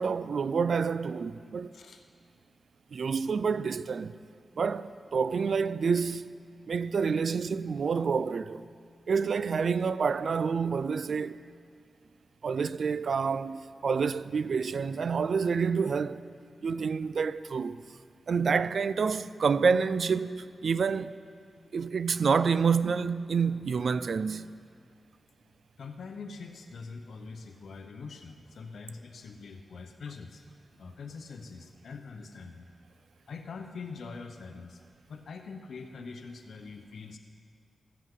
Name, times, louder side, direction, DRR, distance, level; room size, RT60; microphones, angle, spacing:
voice 1, 0.0-1.7 2.9-4.2 4.6-6.4 6.7-8.6 9.1-11.4 12.4-16.2 16.6-17.8 18.3-21.2 21.7-24.5, right 5 dB, 60° right, 0.4 m, -28 dB
voice 2, 25.8-30.4 30.8-32.7 33.3-34.8 35.1-37.2, left 4 dB, 75° left, 0.8 m, -43 dB
15.5 x 13.5 x 3.7 m
wide cardioid pair, 140°, 0 cm